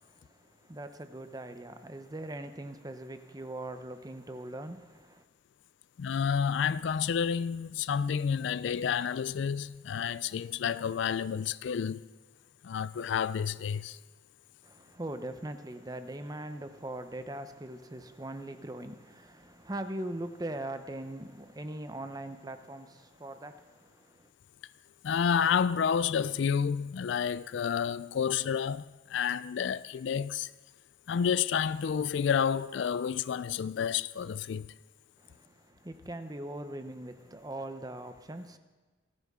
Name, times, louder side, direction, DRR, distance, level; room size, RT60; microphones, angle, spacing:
voice 1, 0.0-5.2 14.6-24.3 35.2-38.6, right 1 dB, 20° right, 0.7 m, -41 dB
voice 2, 6.0-12.1 12.6-14.0 25.0-30.5 31.1-34.7, left 7 dB, 60° left, 0.3 m, -30 dB
27.0 x 9.5 x 3.6 m
head